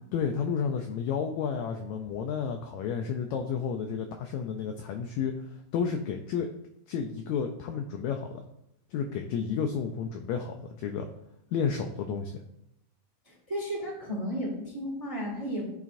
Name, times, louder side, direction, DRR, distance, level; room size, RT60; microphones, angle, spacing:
voice 1, 0.1-6.5 6.9-8.4 8.9-11.1 11.5-12.4, left 6 dB, 85° left, 4 dB, 1.6 m, -31 dB
voice 2, 13.2-15.7, equal, 25° right, -3 dB, 0.7 m, -34 dB
10.5 x 4.0 x 2.5 m, 0.82 s
omnidirectional pair, 3.7 m